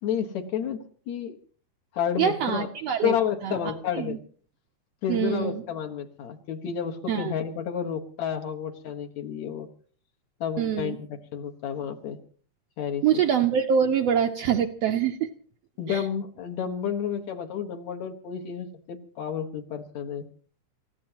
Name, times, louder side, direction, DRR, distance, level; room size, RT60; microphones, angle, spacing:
voice 1, 0.0-1.4 1.9-2.7 3.0-4.2 5.0-9.7 10.4-12.2 12.8-13.0 15.8-20.3, left 8 dB, 65° left, 5 dB, 2.6 m, -31 dB
voice 2, 2.2-3.2 3.4-4.2 5.1-5.6 7.1-7.3 10.6-11.0 13.0-15.3 15.9-16.0, right 8 dB, 70° right, 5 dB, 1.6 m, -25 dB
28.0 x 15.5 x 2.9 m, 0.43 s
omnidirectional pair, 3.6 m